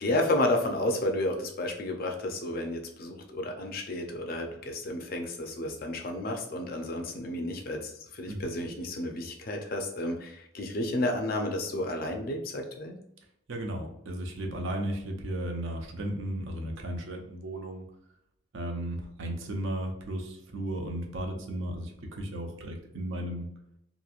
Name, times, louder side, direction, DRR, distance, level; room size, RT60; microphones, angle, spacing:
voice 1, 0.0-12.9, left 1 dB, 45° left, 3 dB, 0.4 m, -31 dB
voice 2, 13.5-17.8 18.5-23.5, right 1 dB, 65° right, 3 dB, 0.5 m, -35 dB
2.9 x 2.5 x 2.4 m, 0.77 s
head